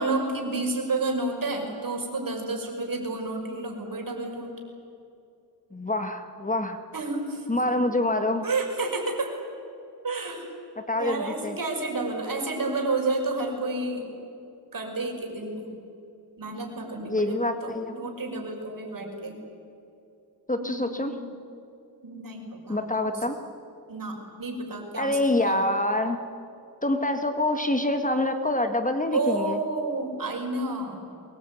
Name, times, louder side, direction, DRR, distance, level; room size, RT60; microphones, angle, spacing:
voice 1, 0.0-4.5 6.9-7.7 8.4-9.3 10.0-10.4 10.9-14.1 14.7-15.8 16.4-19.4 20.6-21.3 22.0-23.2 23.9-25.6 29.1-31.0, right 3 dB, 55° right, 2 dB, 5.9 m, -30 dB
voice 2, 5.7-6.8 7.5-8.4 10.8-11.6 17.0-17.9 20.5-21.1 22.7-23.4 24.9-26.2 26.8-29.6, left 1 dB, 20° left, 7 dB, 1.7 m, -26 dB
23.0 x 21.0 x 9.4 m, 2.6 s
wide cardioid pair, 90°, 40 cm